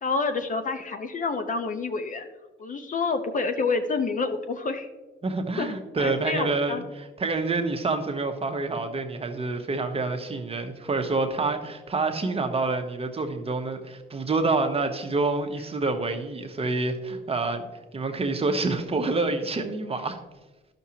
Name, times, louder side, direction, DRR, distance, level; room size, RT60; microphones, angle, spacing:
voice 1, 0.0-2.3 2.6-4.9 5.6-5.7 6.0-6.8, left 4 dB, 40° left, 7 dB, 0.8 m, -28 dB
voice 2, 5.2-17.7 17.9-20.2, right 3 dB, 30° right, 5 dB, 0.9 m, -27 dB
11.5 x 6.0 x 2.9 m, 1.2 s
cardioid pair, 90°, 20 cm